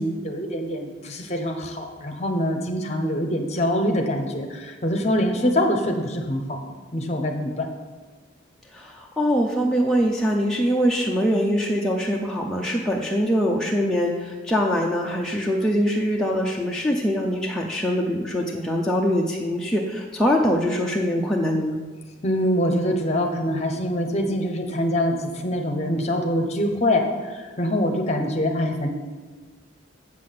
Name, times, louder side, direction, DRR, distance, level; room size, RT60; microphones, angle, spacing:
voice 1, 0.0-7.7 22.2-28.9, left 1 dB, 35° left, 4 dB, 1.0 m, -24 dB
voice 2, 8.7-21.8, equal, 5° left, -3 dB, 0.6 m, -23 dB
7.5 x 6.2 x 7.7 m, 1.4 s
head